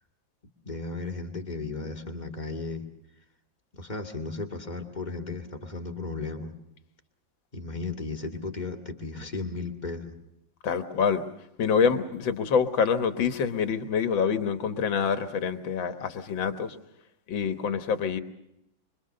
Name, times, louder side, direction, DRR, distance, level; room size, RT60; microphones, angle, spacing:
voice 1, 0.6-2.9 3.7-6.5 7.5-10.1, left 3 dB, 25° left, 2 dB, 2.3 m, -35 dB
voice 2, 10.6-11.2 11.6-16.8 17.3-18.2, left 6 dB, 85° left, 9 dB, 2.1 m, -26 dB
25.5 x 24.0 x 6.6 m, 0.82 s
omnidirectional pair, 2.0 m